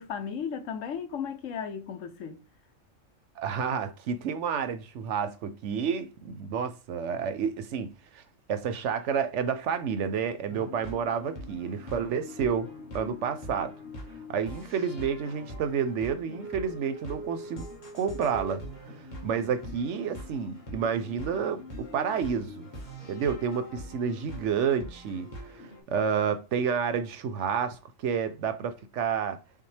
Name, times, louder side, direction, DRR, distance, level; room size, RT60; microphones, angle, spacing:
voice 1, 0.0-2.4, left 7 dB, 70° left, 1.0 m, -35 dB
voice 2, 3.4-8.2 8.5-12.7 12.9-13.7 14.3-17.6 17.9-18.6 19.2-22.7 23.1-29.4, right 7 dB, 70° right, 0.8 m, -30 dB
sound 1, 10.5-25.8, equal, 35° left, 1.3 m, -43 dB
5.6 x 2.1 x 3.2 m
omnidirectional pair, 1.4 m